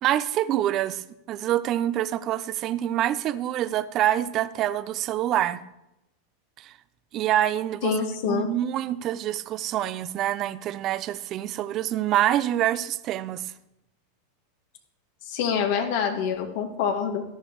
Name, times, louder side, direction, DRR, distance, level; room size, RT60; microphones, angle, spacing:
voice 1, 0.0-5.6 6.6-6.7 7.1-7.9 8.2-13.5, right 12 dB, 40° right, 15 dB, 0.5 m, -26 dB
voice 2, 7.8-8.5 15.2-17.2, left 7 dB, 65° left, 3 dB, 2.1 m, -26 dB
14.5 x 11.5 x 3.1 m, 0.88 s
supercardioid pair, 130°, 0 cm